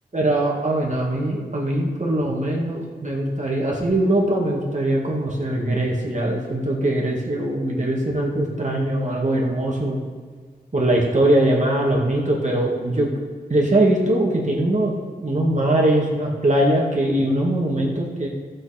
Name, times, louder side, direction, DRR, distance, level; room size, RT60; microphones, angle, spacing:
voice 1, 0.1-10.0 10.7-13.1 13.5-14.9 15.2-18.3, right 1 dB, 45° right, -2 dB, 2.2 m, -21 dB
14.5 x 7.7 x 4.4 m, 1.5 s
wide cardioid pair, 60°, 17 cm